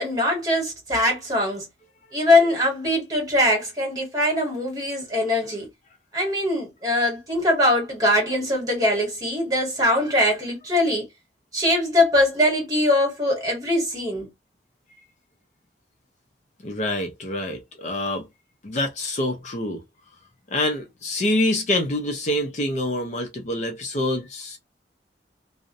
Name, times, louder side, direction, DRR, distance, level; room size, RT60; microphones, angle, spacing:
voice 1, 0.0-1.7 2.1-5.7 6.1-11.0 11.5-14.3, left 1 dB, 20° right, 1.3 m, -22 dB
voice 2, 16.6-18.2 18.6-19.8 20.5-24.6, left 1 dB, 40° left, 0.5 m, -26 dB
2.4 x 2.0 x 2.5 m
head